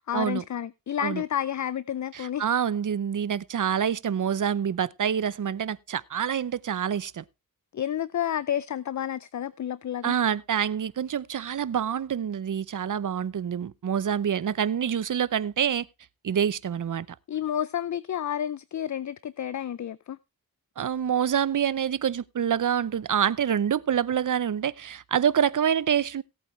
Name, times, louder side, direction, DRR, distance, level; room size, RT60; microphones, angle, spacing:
voice 1, 0.0-2.5 7.7-10.2 17.3-20.2, left 10 dB, 55° left, 0.5 m, -30 dB
voice 2, 2.1-7.2 10.0-15.9 16.2-17.1 20.8-26.2, right 8 dB, 60° right, 0.7 m, -26 dB
17.5 x 8.4 x 3.2 m
wide cardioid pair, 110°, 36 cm